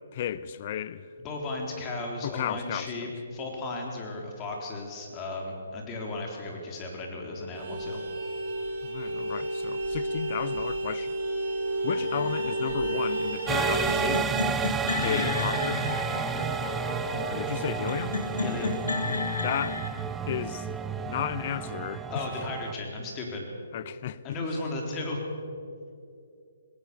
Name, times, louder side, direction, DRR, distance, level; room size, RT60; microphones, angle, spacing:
voice 1, 0.1-1.1 2.2-3.1 8.8-11.1 11.8-14.4 15.0-16.0 17.3-18.2 19.4-19.8 20.3-20.7 21.0-22.2 23.7-24.4, left 10 dB, 40° left, 0.7 m, -33 dB
voice 2, 1.2-8.0 15.0-15.4 18.4-18.8 22.1-23.5 24.2-25.2, left 2 dB, 20° left, 3.8 m, -35 dB
Vehicle horn car horn honking, 7.5-14.1, right 1 dB, 40° right, 5.9 m, -31 dB
sound 1, 11.9-19.9, left 3 dB, 90° left, 2.2 m, -33 dB
sound 2, 13.5-22.7, right 7 dB, 10° right, 0.6 m, -31 dB
20.5 x 18.0 x 7.0 m
hypercardioid pair, 155°, 0 cm